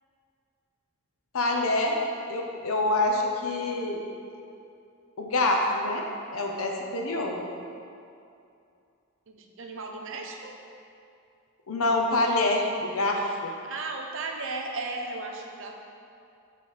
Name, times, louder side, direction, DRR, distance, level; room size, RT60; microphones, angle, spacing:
voice 1, 1.3-2.0 2.3-4.0 5.2-6.0 6.3-7.4 11.7-13.5, left 2 dB, 80° left, 1 dB, 0.8 m, -26 dB
voice 2, 9.3-10.6 13.6-15.7, right 3 dB, 65° right, 2 dB, 0.7 m, -35 dB
7.6 x 3.4 x 5.6 m, 2.5 s
head